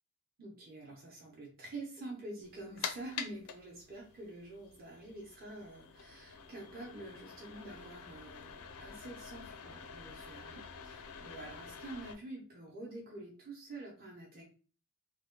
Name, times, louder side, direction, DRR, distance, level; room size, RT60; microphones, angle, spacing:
voice 1, 0.4-14.4, right 2 dB, 40° right, -3 dB, 0.8 m, -47 dB
sound 1, 2.4-12.1, left 7 dB, 85° left, 0.5 m, -47 dB
3.0 x 2.2 x 3.7 m, 0.39 s
head